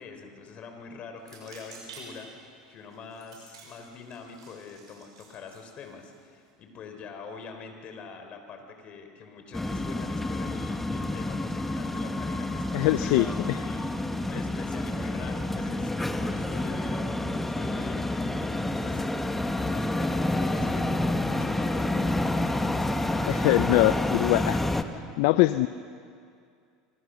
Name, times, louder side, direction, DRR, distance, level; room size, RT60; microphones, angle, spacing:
voice 1, 0.0-13.9 14.2-24.3 24.7-25.0, left 5 dB, 45° left, 6 dB, 4.2 m, -44 dB
sound 1, 1.2-6.5, right 4 dB, 90° right, 7.0 m, -51 dB
sound 2, 9.5-24.8, left 1 dB, 10° left, 1.5 m, -29 dB
voice 2, 12.7-13.6 23.3-24.6 25.2-25.7, left 18 dB, 70° left, 13 dB, 0.6 m, -23 dB
25.0 x 25.0 x 6.5 m, 2.3 s
hypercardioid pair, 95°, 3 cm